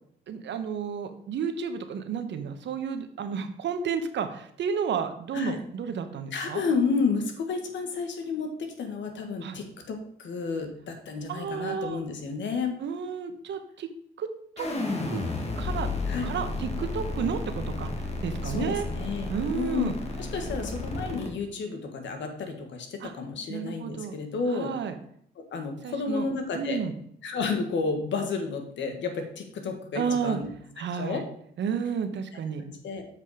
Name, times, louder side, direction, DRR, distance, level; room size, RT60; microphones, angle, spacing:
voice 1, 0.3-6.6 9.4-9.6 11.3-12.0 12.8-13.9 14.2-14.3 14.6-14.7 15.1-15.2 15.6-15.9 16.2-17.9 18.2-18.9 19.3-19.9 23.0-23.1 23.5-24.1 24.5-25.0 25.8-26.2 26.5-26.9 29.9-30.4 30.8-31.2 31.6-32.7, right 6 dB, 65° right, 8 dB, 1.1 m, -31 dB
voice 2, 6.3-12.7 16.1-16.3 18.4-24.7 25.4-26.8 27.2-30.5 30.9-31.2 32.7-33.0, left 4 dB, 70° left, 5 dB, 1.7 m, -31 dB
sound 1, 14.6-21.3, left 2 dB, 30° left, 2.0 m, -32 dB
7.8 x 5.2 x 5.0 m, 0.67 s
cardioid pair, 90°, 20 cm